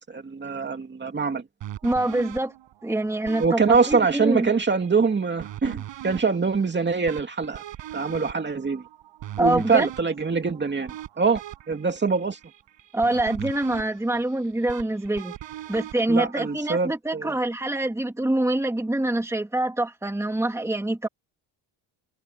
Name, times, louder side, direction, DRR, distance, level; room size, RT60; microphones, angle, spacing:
voice 1, 0.1-1.4 3.4-7.6 7.9-8.8 9.4-11.4 11.7-12.4 16.1-17.3, right 5 dB, 25° right, 2.5 m, -24 dB
sound 1, 1.6-16.8, right 12 dB, 80° right, 7.6 m, -41 dB
voice 2, 1.8-2.5 2.8-4.5 9.4-9.9 12.9-15.3 15.7-21.1, right 1 dB, 5° right, 2.3 m, -25 dB
open air
cardioid pair, 155°, 43 cm